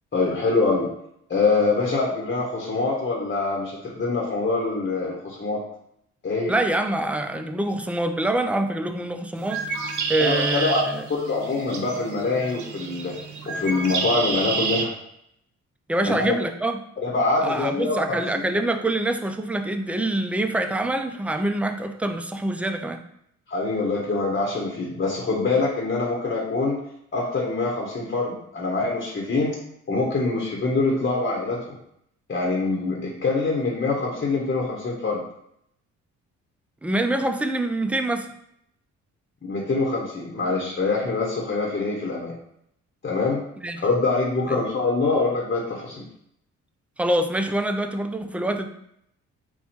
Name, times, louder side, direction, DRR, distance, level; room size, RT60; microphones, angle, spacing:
voice 1, 0.1-0.9 1.3-5.6 6.2-6.5 10.2-10.8 11.1-13.1 13.5-14.9 16.0-16.4 17.0-18.0 18.3-18.5 23.5-26.8 27.1-29.6 29.9-31.6 32.3-35.2 39.4-42.3 43.0-43.4 43.8-46.0, left 3 dB, 35° left, -2 dB, 1.0 m, -24 dB
voice 2, 6.5-9.7 10.1-11.0 15.9-16.8 17.4-23.0 36.8-38.3 43.6-43.8 44.5-44.6 47.0-48.7, right 1 dB, 5° right, 6 dB, 0.3 m, -25 dB
Bird, 9.4-14.9, right 5 dB, 75° right, 0.8 m, -29 dB
4.2 x 2.2 x 4.3 m, 0.73 s
cardioid pair, 90°, 30 cm